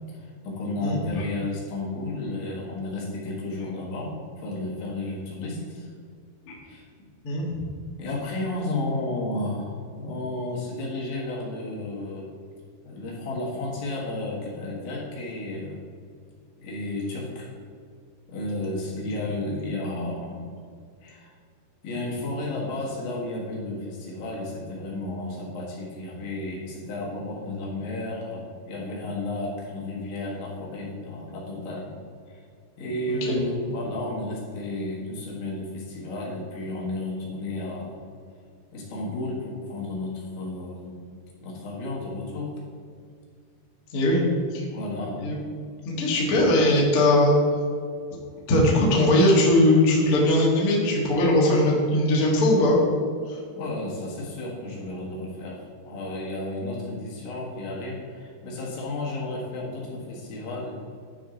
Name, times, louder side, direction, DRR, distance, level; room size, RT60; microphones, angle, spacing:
voice 1, 0.1-5.9 6.6-6.9 8.0-12.3 12.8-15.8 16.6-17.5 18.3-20.4 21.0-21.3 21.8-31.9 32.3-32.4 32.8-38.0 38.7-41.0 41.4-42.6 44.7-45.3 53.6-60.8, left 2 dB, 75° left, -4 dB, 4.1 m, -32 dB
voice 2, 43.9-44.2 44.5-44.6 45.2-45.4 45.8-47.3 48.5-52.8, left 1 dB, 55° left, -4 dB, 1.5 m, -20 dB
12.0 x 5.3 x 3.9 m, 2.2 s
omnidirectional pair, 5.5 m